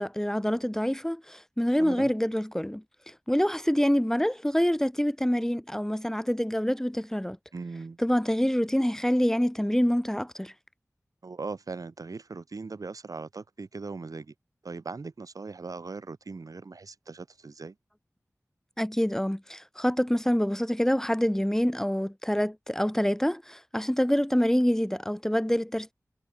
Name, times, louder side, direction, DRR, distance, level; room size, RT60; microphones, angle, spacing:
voice 1, 0.0-7.4 8.0-10.5 18.8-25.9, equal, 5° left, 1.9 m, -26 dB
voice 2, 1.8-2.1 7.5-8.0 11.2-14.3 14.6-17.7, right 4 dB, 80° right, 5.6 m, -39 dB
wide cardioid pair, 50°, 6 cm